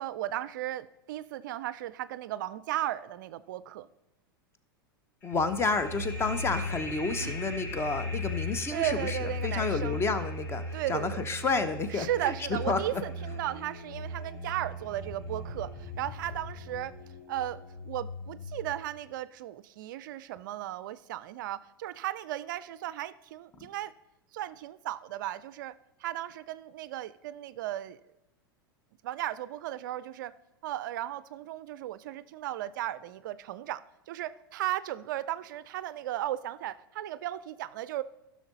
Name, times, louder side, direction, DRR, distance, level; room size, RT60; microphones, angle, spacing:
voice 1, 0.0-3.9 7.2-7.4 8.7-10.1 10.7-11.2 11.9-16.9 17.3-23.9 24.3-28.0 29.0-30.3 30.6-38.0, right 13 dB, 60° right, 17 dB, 0.4 m, -35 dB
sound 1, 5.2-14.5, left 1 dB, 60° left, 2.1 m, -45 dB
voice 2, 5.2-13.0, left 4 dB, 20° left, 11 dB, 0.8 m, -30 dB
sound 2, 5.3-18.7, left 2 dB, 45° left, 1.6 m, -38 dB
14.5 x 6.2 x 4.0 m, 0.92 s
figure-of-eight pair, 90°, 12 cm